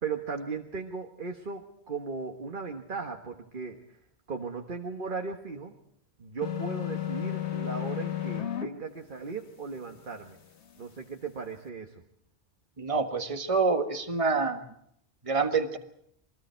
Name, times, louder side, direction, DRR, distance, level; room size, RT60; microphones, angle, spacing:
voice 1, 0.0-3.8 4.3-5.7 6.2-10.4 10.8-11.9, right 5 dB, 50° right, 3 dB, 1.6 m, -37 dB
sound 1, 6.4-8.7, left 11 dB, 90° left, 1.6 m, -32 dB
voice 2, 12.8-14.6 15.2-15.8, right 4 dB, 30° right, 6 dB, 1.6 m, -27 dB
28.0 x 22.0 x 4.5 m, 0.73 s
omnidirectional pair, 1.1 m